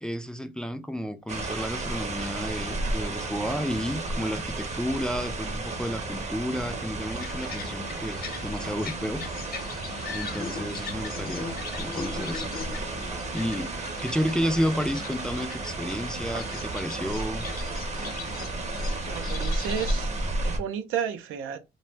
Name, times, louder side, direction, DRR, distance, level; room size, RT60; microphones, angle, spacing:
voice 1, 0.0-9.2 10.1-12.5 13.3-13.7 14.0-17.5, equal, 5° left, 0.3 m, -31 dB
sound 1, 1.3-20.6, right 2 dB, 35° right, 0.7 m, -33 dB
sound 2, 7.0-20.0, left 5 dB, 50° left, 0.7 m, -40 dB
voice 2, 19.1-20.1 20.4-21.6, right 8 dB, 90° right, 0.5 m, -32 dB
2.5 x 2.1 x 3.1 m
cardioid pair, 90°, 20 cm